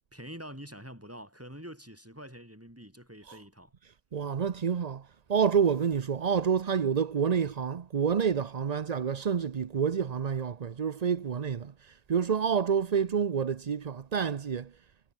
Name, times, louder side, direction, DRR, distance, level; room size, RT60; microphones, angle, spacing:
voice 1, 0.1-3.7, equal, 10° right, 7.4 m, -46 dB
voice 2, 3.8-14.8, right 7 dB, 45° right, 0.5 m, -28 dB
omnidirectional pair, 1.6 m